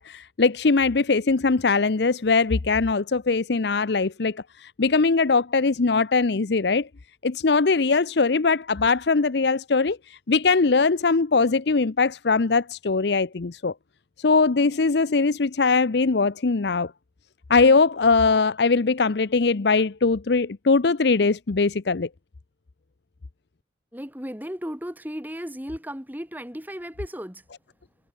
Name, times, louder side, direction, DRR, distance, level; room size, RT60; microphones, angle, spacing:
voice 1, 0.0-6.9 7.2-13.7 14.2-16.9 17.5-22.1, left 4 dB, 65° left, 0.7 m, -21 dB
voice 2, 23.9-27.4, equal, 10° right, 3.6 m, -35 dB
head